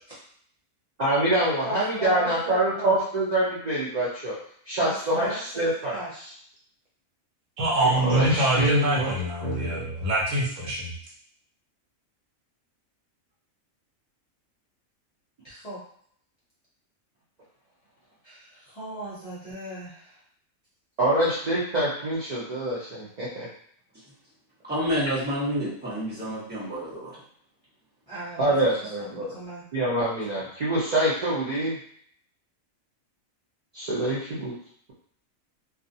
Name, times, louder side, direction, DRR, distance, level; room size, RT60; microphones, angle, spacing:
voice 1, 1.0-4.4 4.7-5.9 7.8-9.1 9.4-9.8 21.0-23.5 28.4-29.3 29.7-31.8 33.7-34.5, right 1 dB, 55° right, -7 dB, 0.5 m, -25 dB
voice 2, 1.6-3.0 4.8-6.4 15.4-15.8 18.2-20.2 28.1-29.6, equal, 35° left, -9 dB, 0.6 m, -37 dB
voice 3, 7.6-11.0, right 1 dB, 70° right, -4 dB, 1.0 m, -24 dB
voice 4, 24.6-27.2, equal, 10° right, -10 dB, 0.9 m, -29 dB
2.4 x 2.3 x 2.6 m, 0.63 s
omnidirectional pair, 1.4 m